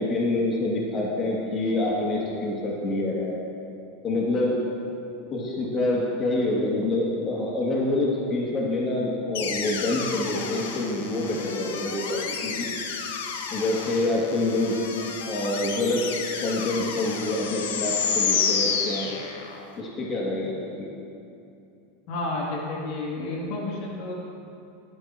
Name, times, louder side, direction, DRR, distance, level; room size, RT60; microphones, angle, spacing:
voice 1, 0.0-3.4 4.0-4.6 5.3-12.7 13.5-14.7 15.3-16.0 16.4-19.1 19.8-20.9, left 2 dB, 35° left, -4 dB, 2.6 m, -26 dB
sound 1, 9.3-19.6, left 6 dB, 85° left, 1.3 m, -30 dB
voice 2, 22.1-24.1, left 2 dB, 60° left, -3 dB, 2.9 m, -31 dB
18.0 x 12.5 x 3.1 m, 2.6 s
supercardioid pair, 115°, 0 cm